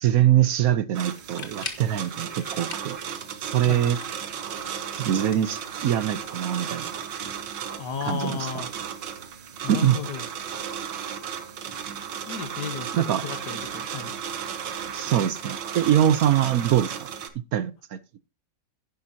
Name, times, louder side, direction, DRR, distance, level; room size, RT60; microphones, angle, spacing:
voice 1, 0.0-3.0 3.4-4.0 5.0-6.9 8.0-8.5 9.7-10.0 12.9-13.2 14.9-17.1 17.5-18.0, right 11 dB, 65° right, 1.0 m, -23 dB
sound 1, 0.9-17.3, right 8 dB, 80° right, 1.8 m, -35 dB
sound 2, 1.2-1.9 2.4-3.0 3.3-4.3 5.2-6.1, left 3 dB, 30° left, 1.7 m, -40 dB
voice 2, 7.8-8.7 9.6-10.3 12.3-13.0 13.2-14.1, left 7 dB, 70° left, 1.8 m, -33 dB
11.0 x 10.5 x 2.8 m
omnidirectional pair, 1.9 m